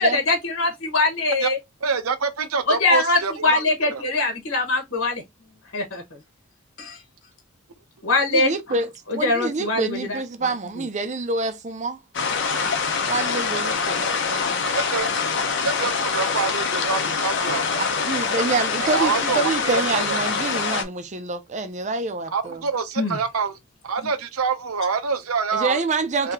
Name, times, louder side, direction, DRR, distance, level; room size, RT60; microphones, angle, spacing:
voice 1, 0.0-1.6 2.7-5.2 5.7-6.0 6.8-7.0 8.0-8.5 9.1-10.5 23.0-23.2, left 2 dB, 75° left, 1.2 m, -22 dB
voice 2, 1.8-4.0 14.7-15.1 15.6-17.6 18.8-20.2 22.3-23.6 23.8-25.8 26.2-26.3, right 5 dB, 80° right, 0.7 m, -26 dB
voice 3, 8.3-12.0 13.0-14.7 17.8-22.6 25.5-26.3, right 3 dB, 35° right, 0.5 m, -27 dB
sound 1, 12.1-20.8, left 5 dB, 55° left, 0.7 m, -24 dB
3.2 x 2.8 x 3.5 m
head